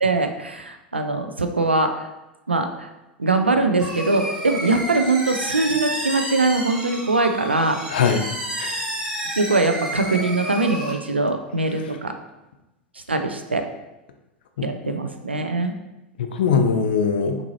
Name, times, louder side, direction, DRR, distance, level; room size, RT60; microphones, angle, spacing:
voice 1, 0.0-2.1 2.5-2.9 3.2-7.8 9.4-12.1 13.1-13.7 14.6-15.7, right 3 dB, 85° right, 6 dB, 0.4 m, -22 dB
sound 1, 3.8-10.9, right 1 dB, 10° right, 1.3 m, -30 dB
voice 2, 7.9-8.2 8.6-8.8 14.6-14.9 16.2-17.4, left 6 dB, 60° left, 6 dB, 0.5 m, -21 dB
6.0 x 2.6 x 2.8 m, 0.99 s
figure-of-eight pair, 85°, 6 cm